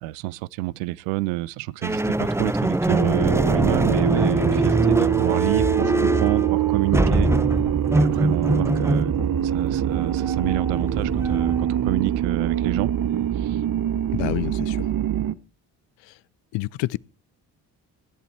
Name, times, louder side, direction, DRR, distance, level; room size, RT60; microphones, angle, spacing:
voice 1, 0.0-7.3 8.0-9.1 9.4-12.9 13.3-13.6, right 20 dB, 70° right, 0.6 m, -29 dB
sound 1, 1.8-11.9, right 1 dB, 5° right, 0.8 m, -24 dB
sound 2, 2.9-15.4, right 9 dB, 45° right, 1.0 m, -24 dB
voice 2, 14.1-14.9 16.1-16.2 16.5-17.0, left 20 dB, 60° left, 0.6 m, -28 dB
16.0 x 11.0 x 4.5 m
hypercardioid pair, 45°, 50 cm